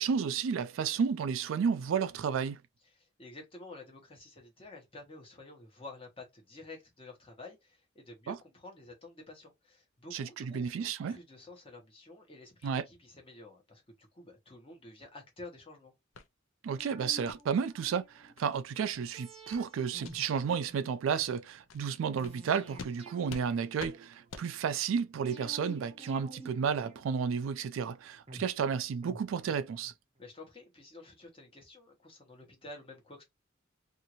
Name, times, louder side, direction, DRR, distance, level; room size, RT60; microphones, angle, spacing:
voice 1, 0.0-2.6 8.3-8.4 10.1-11.2 12.6-12.9 16.6-29.9, right 6 dB, 75° right, 0.3 m, -32 dB
voice 2, 3.0-15.9 30.2-33.2, left 2 dB, 25° left, 1.0 m, -50 dB
sound 1, 16.1-16.3 16.7-16.8 17.2-17.4 17.8-17.9 18.4-18.5 18.9-19.1 19.5-19.7 20.0-20.1 20.6-20.7 21.1-21.3 21.7-21.8 22.2-22.4 22.8-22.9 23.3-23.5 23.8-23.9 24.3-24.5, left 5 dB, 70° left, 0.4 m, -46 dB
sound 2, 16.8-18.4 19.1-21.3 22.2-24.4 25.3-27.6 28.3-29.9 30.2-30.3, right 1 dB, 30° right, 0.6 m, -51 dB
2.6 x 2.5 x 2.9 m
head